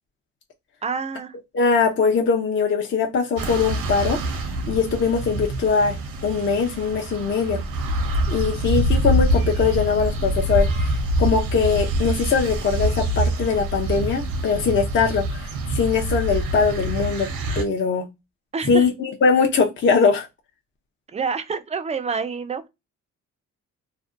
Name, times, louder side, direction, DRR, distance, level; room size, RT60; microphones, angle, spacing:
voice 1, 0.8-1.3 18.5-18.9 21.1-22.7, right 5 dB, 20° right, 0.3 m, -27 dB
voice 2, 1.5-4.2 4.7-7.6 8.3-17.3 17.6-18.1 18.7-20.3, left 5 dB, 35° left, 0.5 m, -21 dB
sound 1, 3.4-17.6, right 1 dB, 80° right, 0.7 m, -25 dB
2.5 x 2.1 x 2.4 m
supercardioid pair, 65°, 34 cm